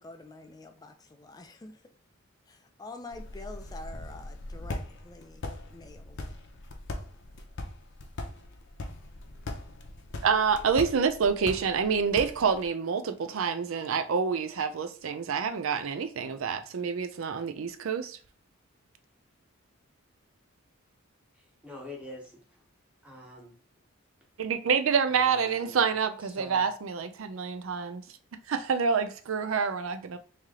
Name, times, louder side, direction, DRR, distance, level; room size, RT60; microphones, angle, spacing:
voice 1, 0.0-1.8 2.5-5.3 5.7-6.2, left 2 dB, 20° left, 0.4 m, -46 dB
sound 1, 3.1-12.7, left 2 dB, 60° left, 0.6 m, -41 dB
voice 2, 10.2-18.2 24.4-28.0 28.5-30.2, right 6 dB, 65° right, 0.4 m, -27 dB
voice 3, 21.6-22.4 23.0-23.5 25.1-25.8 26.4-26.7, left 1 dB, 5° right, 0.9 m, -45 dB
3.2 x 2.8 x 3.6 m
head